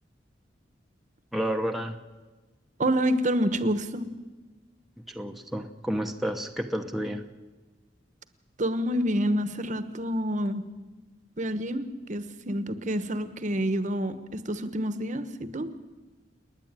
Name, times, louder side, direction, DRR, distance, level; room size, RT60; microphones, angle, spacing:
voice 1, 1.3-2.0 5.0-7.2, equal, ahead, 3 dB, 0.8 m, -31 dB
voice 2, 2.8-4.1 8.6-10.7 11.4-15.7, equal, 45° right, 12 dB, 1.1 m, -28 dB
29.5 x 10.0 x 9.0 m, 1.3 s
head